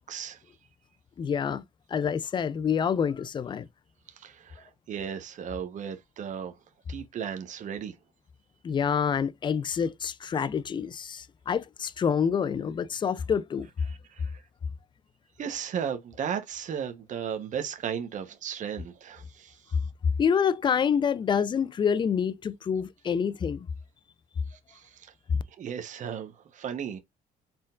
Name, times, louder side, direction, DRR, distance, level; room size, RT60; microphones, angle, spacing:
voice 1, 0.1-0.4 4.2-6.6 6.9-7.9 13.9-14.4 15.4-19.7 24.5-25.1 25.6-27.0, right 8 dB, 45° right, 0.9 m, -35 dB
voice 2, 1.2-1.6 1.9-3.7 8.6-13.7 20.2-23.7, left 7 dB, 30° left, 0.4 m, -27 dB
4.3 x 3.7 x 2.3 m
cardioid pair, 110°, 17 cm